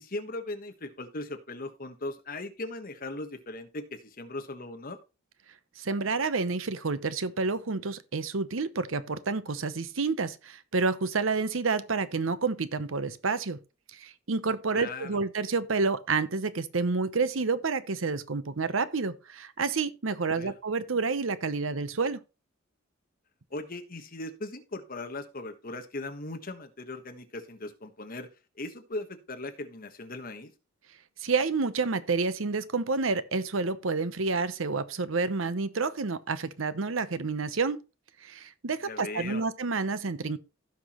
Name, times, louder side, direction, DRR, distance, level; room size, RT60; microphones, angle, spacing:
voice 1, 0.0-5.0 14.7-15.2 20.3-20.5 23.5-28.3 28.6-30.5 38.8-39.4, left 2 dB, 45° left, 1.4 m, -38 dB
voice 2, 5.8-13.6 13.9-22.2 31.2-37.8 38.2-40.4, right 4 dB, 70° right, 0.8 m, -29 dB
16.0 x 6.0 x 3.1 m
head